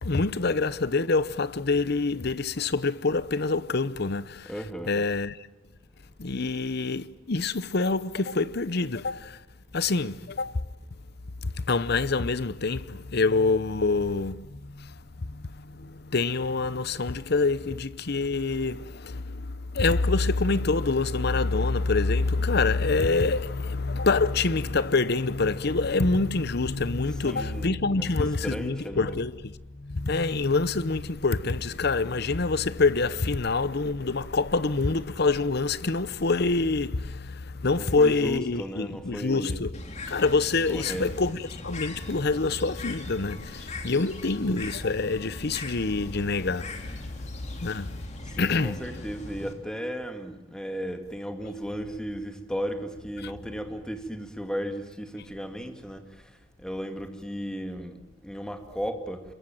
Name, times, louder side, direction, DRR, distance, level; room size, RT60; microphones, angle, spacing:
voice 1, 0.0-4.5 4.8-5.4 6.2-9.4 9.7-10.6 11.4-14.9 15.3-39.8 40.1-47.0 47.6-48.0 48.4-48.8 53.2-53.3, left 3 dB, 55° left, 0.9 m, -26 dB
voice 2, 4.5-5.0 27.2-29.2 37.7-39.7 40.7-41.3 48.2-56.3 56.6-57.9 58.2-59.2, equal, 5° left, 2.2 m, -35 dB
Bird, 39.7-49.5, left 2 dB, 35° left, 3.2 m, -40 dB
27.5 x 22.5 x 9.0 m
head